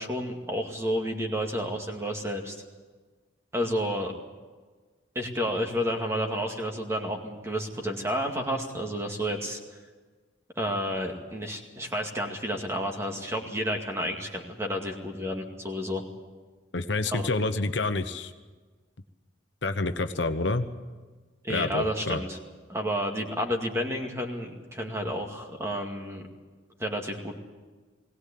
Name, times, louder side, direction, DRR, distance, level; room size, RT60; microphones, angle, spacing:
voice 1, 0.0-2.6 3.5-4.1 5.2-9.6 10.6-16.0 17.1-17.3 21.4-22.4 22.7-26.2 26.8-27.4, equal, 15° right, 2 dB, 2.2 m, -31 dB
voice 2, 16.7-18.3 19.6-20.7 21.5-22.2, left 3 dB, 70° left, 8 dB, 1.1 m, -28 dB
21.0 x 17.5 x 8.5 m, 1.4 s
head